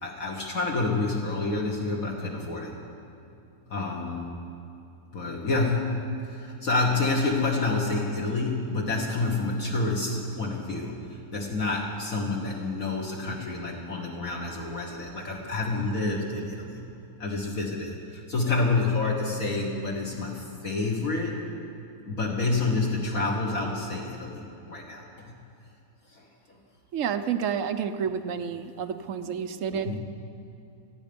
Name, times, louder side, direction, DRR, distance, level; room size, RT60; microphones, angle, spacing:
voice 1, 0.0-2.8 3.7-4.3 5.1-16.8 17.2-21.4 22.1-25.3 26.1-26.6 29.3-29.4 29.8-30.0, left 3 dB, 55° left, -2 dB, 1.8 m, -28 dB
voice 2, 26.9-30.0, right 7 dB, 60° right, 9 dB, 0.9 m, -30 dB
28.0 x 9.4 x 5.2 m, 2.8 s
omnidirectional pair, 1.8 m